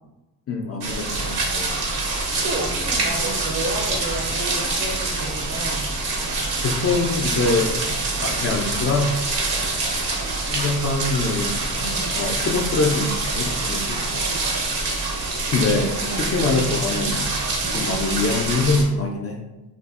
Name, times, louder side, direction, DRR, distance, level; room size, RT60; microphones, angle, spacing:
voice 1, 0.5-1.7 6.6-7.8 8.2-9.1 10.5-11.5 11.8-14.1 15.5-15.9 16.2-17.3 17.7-19.4, left 3 dB, 40° left, 0 dB, 0.4 m, -24 dB
sound 1, 0.8-18.8, right 3 dB, 65° right, 0.7 m, -25 dB
voice 2, 2.1-5.8 11.8-12.2 16.1-16.4 17.6-17.9, right 1 dB, 25° right, 0 dB, 0.5 m, -32 dB
2.6 x 2.4 x 2.4 m, 1.0 s
cardioid pair, 60°, 40 cm